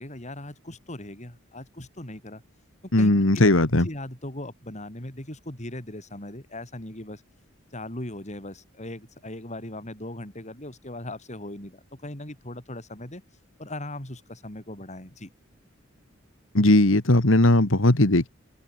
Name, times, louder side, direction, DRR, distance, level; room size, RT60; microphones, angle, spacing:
voice 1, 0.0-2.4 3.0-3.5 3.8-7.2 7.7-13.2 13.6-15.3, left 1 dB, 35° left, 5.2 m, -39 dB
voice 2, 2.9-3.9 16.5-18.3, left 1 dB, 75° left, 2.0 m, -18 dB
open air
head